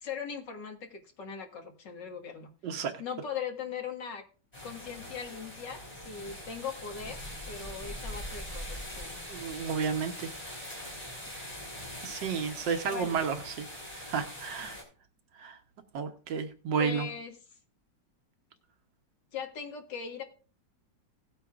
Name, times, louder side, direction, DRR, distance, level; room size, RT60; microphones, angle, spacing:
voice 1, 0.0-4.2 4.6-7.2 7.5-9.2 12.9-13.2 16.8-17.4 19.3-20.2, left 7 dB, 75° left, 3 dB, 2.3 m, -40 dB
sound 1, 4.5-14.8, left 1 dB, 20° left, 4.1 m, -42 dB
voice 2, 9.3-10.3 12.0-13.7 14.0-14.8 15.4-15.6 15.9-17.1, right 6 dB, 85° right, 6 dB, 1.6 m, -32 dB
17.0 x 9.0 x 2.4 m, 0.38 s
omnidirectional pair, 1.9 m